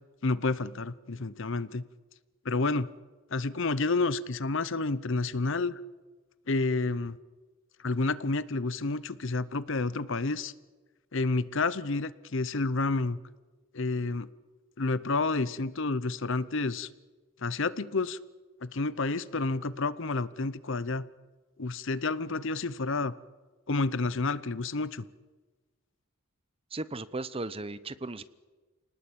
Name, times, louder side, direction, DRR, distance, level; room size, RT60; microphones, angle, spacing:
voice 1, 0.2-1.8 2.4-2.9 3.3-5.8 6.5-7.2 7.8-10.5 11.1-13.2 13.7-14.3 14.8-16.9 17.4-18.2 18.6-21.0 21.6-23.1 23.7-25.1, left 3 dB, 60° left, 17 dB, 0.8 m, -30 dB
voice 2, 26.7-28.2, right 2 dB, 25° right, 15 dB, 0.8 m, -36 dB
29.0 x 19.5 x 8.7 m, 1.3 s
head